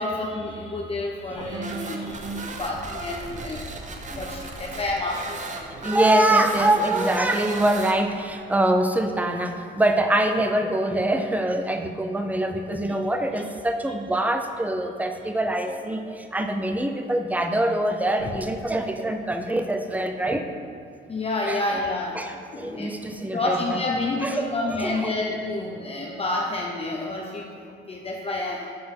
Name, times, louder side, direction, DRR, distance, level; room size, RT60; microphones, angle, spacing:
voice 1, 0.0-5.9 10.4-10.5 12.9-13.0 18.2-18.3 21.1-22.2 22.5-28.7, left 2 dB, 30° left, -1 dB, 0.7 m, -29 dB
sound 1, 1.3-8.3, right 3 dB, 40° right, 0.8 m, -35 dB
voice 2, 4.0-4.5 5.8-20.5 21.5-21.6 22.1-23.8 24.2-25.1, right 1 dB, 10° right, 5 dB, 0.6 m, -24 dB
7.6 x 3.8 x 6.0 m, 2.4 s
cardioid pair, 90°, 20 cm